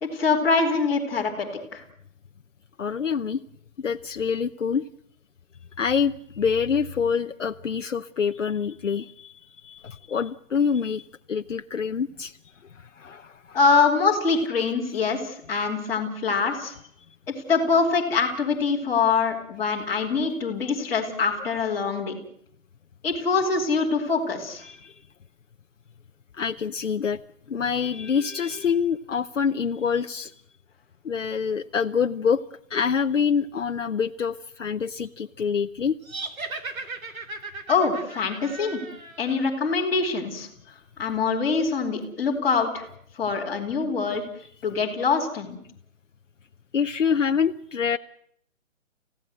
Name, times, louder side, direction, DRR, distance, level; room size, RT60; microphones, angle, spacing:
voice 1, 0.0-1.8 13.5-16.7 17.5-22.1 23.0-24.7 37.7-38.8 39.2-40.5 41.0-42.8 43.2-44.2 44.6-45.6, left 4 dB, 5° left, -7 dB, 2.6 m, -24 dB
voice 2, 2.8-3.4 3.8-4.9 5.8-12.4 12.7-13.6 24.6-24.9 26.3-27.2 27.5-30.3 31.0-32.4 32.7-36.0 46.7-48.0, left 6 dB, 65° left, 7 dB, 0.9 m, -26 dB
sound 1, 36.0-39.5, right 3 dB, 85° right, 3.1 m, -37 dB
29.0 x 16.0 x 7.8 m, 0.69 s
hypercardioid pair, 175°, 40 cm